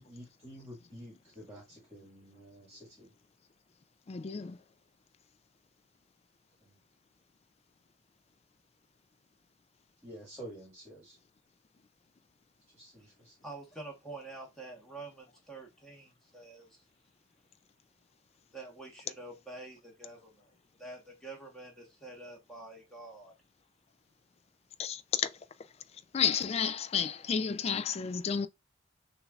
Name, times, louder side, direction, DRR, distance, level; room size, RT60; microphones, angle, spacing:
voice 1, 0.0-3.1 6.6-6.8 10.0-11.2 12.7-13.4, equal, 15° right, 1.7 m, -49 dB
voice 2, 4.1-4.6 24.8-25.3 26.1-28.5, left 7 dB, 35° left, 0.3 m, -31 dB
voice 3, 13.4-16.8 18.5-20.5 20.8-23.3, right 2 dB, 5° left, 1.1 m, -47 dB
6.3 x 2.4 x 2.4 m
head